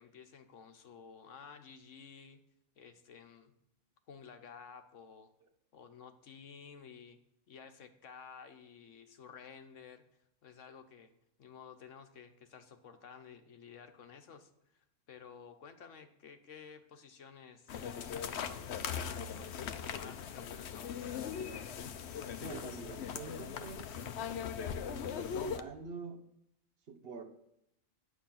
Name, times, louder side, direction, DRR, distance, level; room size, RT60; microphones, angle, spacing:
voice 1, 0.0-2.4 2.8-3.5 4.1-5.3 5.7-7.2 7.5-10.0 10.4-11.1 11.4-17.7 18.1-21.3, left 6 dB, 90° left, 8 dB, 1.4 m, -53 dB
sound 1, 17.7-25.6, left 7 dB, 65° left, 0.9 m, -40 dB
voice 2, 22.4-23.9 24.6-26.2 26.9-27.2, right 4 dB, 55° right, 7 dB, 1.1 m, -46 dB
11.5 x 8.4 x 5.7 m, 0.79 s
omnidirectional pair, 1.3 m